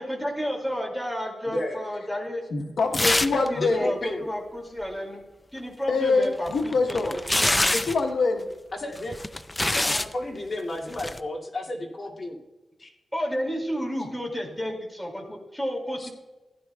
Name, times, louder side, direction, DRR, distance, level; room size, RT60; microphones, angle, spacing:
voice 1, 0.0-2.4 3.3-5.2 5.5-7.8 13.1-16.1, equal, ahead, 0 dB, 2.3 m, -31 dB
voice 2, 1.4-1.8 3.6-4.2 8.7-9.1 9.6-12.4 12.8-12.9 16.0-16.1, left 1 dB, 30° left, -3 dB, 2.3 m, -32 dB
voice 3, 2.5-3.9 5.9-7.2 7.7-8.5 9.9-10.0, left 3 dB, 90° left, 2 dB, 1.1 m, -25 dB
rasgando periodico, 2.9-3.5 3.7-3.8 6.2-8.0 9.0-10.1 10.9-11.2, left 1 dB, 15° left, 0.4 m, -25 dB
15.5 x 11.0 x 2.3 m, 1.1 s
wide cardioid pair, 150°, 0 cm